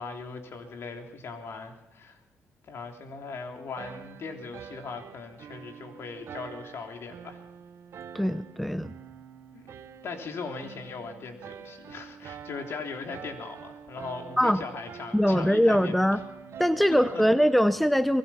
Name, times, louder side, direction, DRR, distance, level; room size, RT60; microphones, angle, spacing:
voice 1, 0.0-2.2 2.6-7.4 9.5-9.7 10.0-16.2 16.9-17.3, left 4 dB, 60° left, 3 dB, 3.6 m, -39 dB
sound 1, 3.8-17.4, right 8 dB, 60° right, 1.2 m, -46 dB
voice 2, 8.1-8.9 14.4-14.6 15.1-16.2 16.6-18.2, equal, ahead, 12 dB, 0.8 m, -22 dB
24.5 x 20.5 x 5.8 m, 0.86 s
cardioid pair, 95°, 5 cm